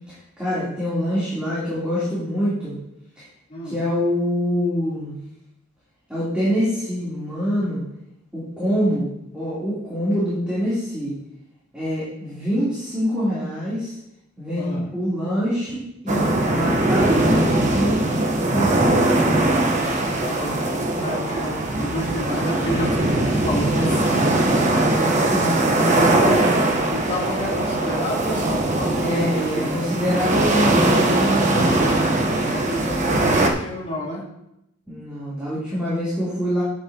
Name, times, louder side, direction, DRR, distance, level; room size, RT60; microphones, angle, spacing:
voice 1, 0.4-2.7 3.6-5.1 6.1-7.8 8.3-9.1 9.3-11.2 11.7-13.9 14.4-17.4 17.7-18.0 18.4-19.1 24.9-26.7 28.9-31.7 34.9-36.6, equal, 5° right, -11 dB, 3.5 m, -25 dB
sound 1, 16.1-33.5, right 2 dB, 40° right, 1.2 m, -20 dB
voice 2, 19.8-24.5 24.7-25.4 25.8-26.5 26.9-29.8 32.4-34.2, equal, 35° left, -7 dB, 3.5 m, -30 dB
11.0 x 8.7 x 3.0 m, 0.83 s
head